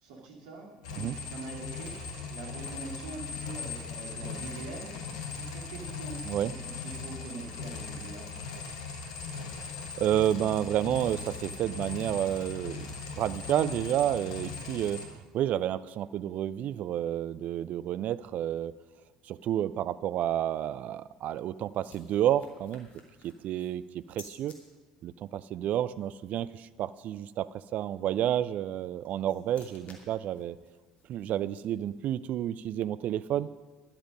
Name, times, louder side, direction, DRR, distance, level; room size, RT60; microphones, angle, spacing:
voice 1, 0.0-1.9 2.3-4.9 5.3-8.2, right 3 dB, 65° right, 0 dB, 2.8 m, -44 dB
sound 1, 0.8-15.1, left 4 dB, 70° left, 1.5 m, -39 dB
voice 2, 10.0-15.0 15.3-18.7 19.2-22.9 23.2-24.5 25.0-30.6 31.1-33.5, right 11 dB, 50° right, 17 dB, 0.5 m, -30 dB
sound 2, 20.9-24.6 28.7-32.1, left 4 dB, 45° left, 2.7 m, -57 dB
13.0 x 11.0 x 5.2 m, 1.3 s
figure-of-eight pair, 60°, 3 cm